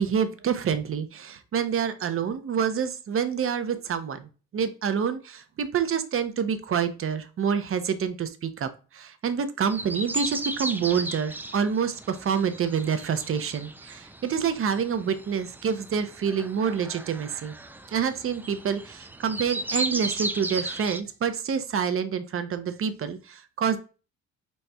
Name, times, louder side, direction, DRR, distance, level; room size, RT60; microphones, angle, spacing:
voice 1, 0.0-17.5 17.9-23.8, right 7 dB, 45° right, 10 dB, 0.7 m, -27 dB
sound 1, 9.6-21.0, right 2 dB, 5° right, 0.3 m, -36 dB
4.6 x 4.1 x 2.3 m, 0.34 s
cardioid pair, 90°, 30 cm